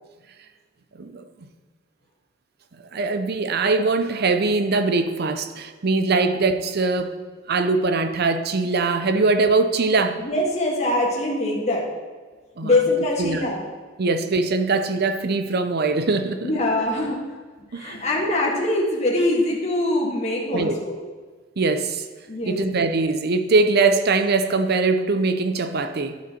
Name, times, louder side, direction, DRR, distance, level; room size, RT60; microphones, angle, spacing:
voice 1, 1.0-1.5 2.9-7.2 7.5-10.2 12.6-12.7 13.2-13.5 14.0-16.5 17.7-18.0 20.5-20.7 21.6-22.0 22.5-26.2, right 3 dB, 55° right, 9 dB, 0.6 m, -22 dB
voice 2, 10.2-11.9 12.6-13.7 16.4-17.2 17.6-20.9 22.3-22.8, left 1 dB, 35° left, -4 dB, 1.6 m, -23 dB
11.5 x 6.9 x 4.3 m, 1.4 s
head